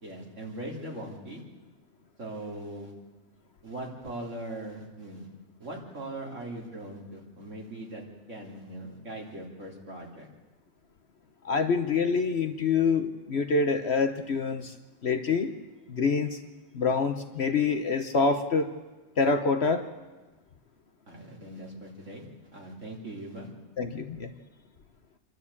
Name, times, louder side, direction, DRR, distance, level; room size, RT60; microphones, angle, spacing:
voice 1, 0.0-1.4 2.2-2.9 3.6-5.3 5.6-10.3 21.1-22.3 22.5-23.5, right 1 dB, 55° right, -1 dB, 3.7 m, -40 dB
voice 2, 11.4-14.7 15.0-15.5 15.9-16.4 16.7-18.7 19.2-19.8 23.8-24.3, left 4 dB, 50° left, 8 dB, 1.1 m, -26 dB
27.5 x 12.0 x 8.5 m, 1.2 s
omnidirectional pair, 1.5 m